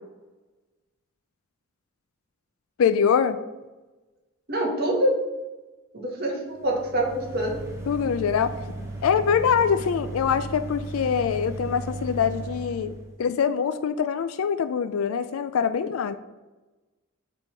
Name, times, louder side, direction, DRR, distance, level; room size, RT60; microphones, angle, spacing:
voice 1, 2.8-3.4 7.9-8.6 9.0-16.1, left 7 dB, 80° left, 11 dB, 0.4 m, -24 dB
voice 2, 4.5-5.2 5.9-7.6, right 1 dB, 45° right, -1 dB, 1.6 m, -25 dB
sound 1, 6.5-13.1, right 2 dB, 15° right, 1.3 m, -36 dB
6.7 x 3.6 x 5.8 m, 1.1 s
head